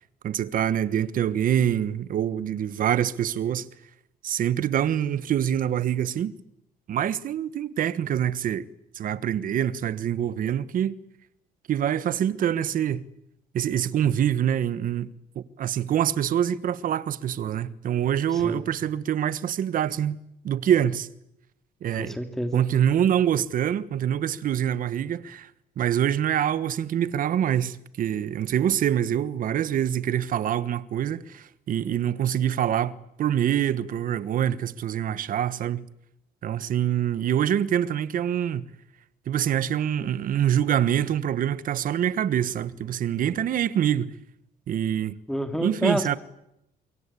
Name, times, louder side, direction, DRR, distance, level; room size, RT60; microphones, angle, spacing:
voice 1, 0.2-3.7 4.2-6.3 6.9-8.7 8.9-11.0 11.7-13.0 13.5-20.2 20.4-21.1 21.8-22.2 22.5-25.5 25.8-35.8 36.4-38.6 39.3-44.2 44.7-45.2 45.6-46.2, right 10 dB, 55° right, 1.3 m, -25 dB
voice 2, 18.3-18.7 21.9-22.6 45.3-46.2, equal, ahead, 2.8 m, -29 dB
26.0 x 23.0 x 8.5 m
cardioid pair, 110°, 17 cm